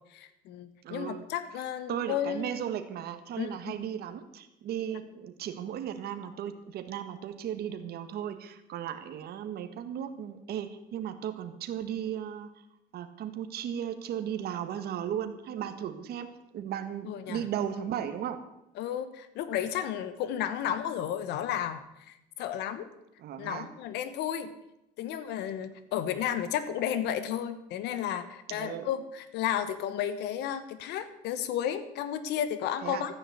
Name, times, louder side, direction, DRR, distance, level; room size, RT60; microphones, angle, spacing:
voice 1, 0.1-2.5 3.4-3.6 17.0-17.4 18.8-22.9 23.4-24.5 25.0-33.1, left 10 dB, 85° left, 12 dB, 1.3 m, -33 dB
voice 2, 0.8-1.3 1.9-12.5 12.9-18.4 23.2-23.7 28.5-28.9 32.8-33.0, right 9 dB, 70° right, 8 dB, 1.8 m, -36 dB
14.0 x 9.8 x 8.1 m, 0.87 s
cardioid pair, 110°, 17 cm